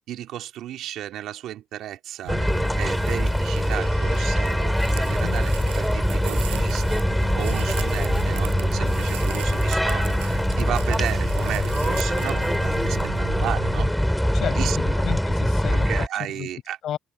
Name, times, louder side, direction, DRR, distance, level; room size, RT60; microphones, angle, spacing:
voice 1, 0.0-7.0 7.3-13.9 14.5-15.0 15.7-16.8, right 12 dB, 70° right, 2.6 m, -34 dB
sound 1, 2.2-13.9, right 28 dB, 90° right, 6.6 m, -38 dB
sound 2, 2.3-16.1, equal, ahead, 5.2 m, -23 dB
voice 2, 14.3-16.5 16.8-17.0, left 10 dB, 60° left, 6.3 m, -32 dB
supercardioid pair, 70°, 0 cm